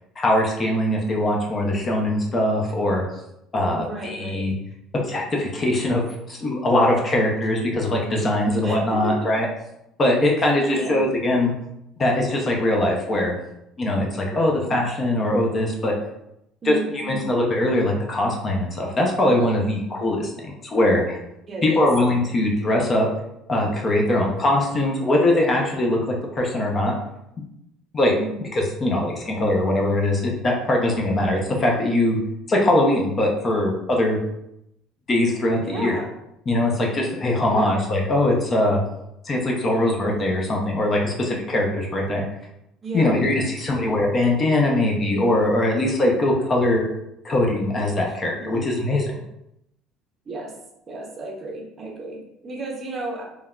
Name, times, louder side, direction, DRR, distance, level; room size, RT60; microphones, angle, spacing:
voice 1, 0.2-3.0 3.5-4.5 5.0-9.5 10.0-11.5 12.0-13.3 13.8-15.9 16.6-16.8 17.0-21.2 21.6-23.1 23.5-27.0 27.9-28.1 28.5-32.2 32.5-34.2 35.1-36.0 36.5-38.8 39.2-42.2 42.9-46.9 47.2-49.0, left 1 dB, 25° left, -1 dB, 0.5 m, -21 dB
voice 2, 3.7-4.5 8.6-9.3 10.4-11.1 14.3-14.5 16.6-17.3 21.5-21.9 28.2-28.4 35.6-36.1 37.5-37.8 42.8-43.8 48.4-48.6 50.3-50.6 50.9-53.2, right 2 dB, 30° right, -1 dB, 0.6 m, -33 dB
3.3 x 2.2 x 2.3 m, 0.83 s
cardioid pair, 135°, 0 cm